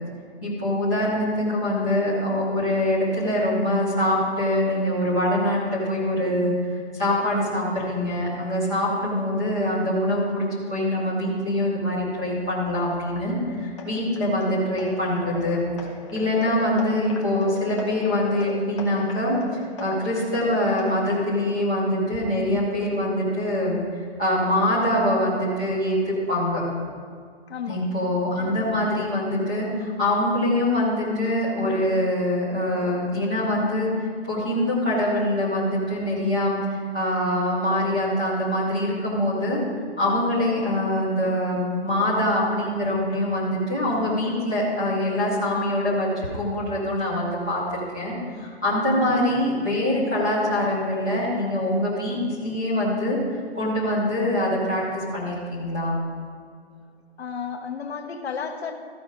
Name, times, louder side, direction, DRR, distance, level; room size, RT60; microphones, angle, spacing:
voice 1, 0.4-15.7 16.1-23.8 24.2-26.6 27.7-33.9 34.3-39.6 40.0-53.2 53.5-56.0, left 1 dB, 5° left, -12 dB, 0.5 m, -24 dB
sound 1, 12.2-21.3, left 3 dB, 30° left, 0.9 m, -40 dB
voice 2, 27.5-27.9 57.2-58.7, left 6 dB, 70° left, 6 dB, 1.2 m, -32 dB
14.0 x 5.1 x 4.8 m, 2.1 s
hypercardioid pair, 175°, 33 cm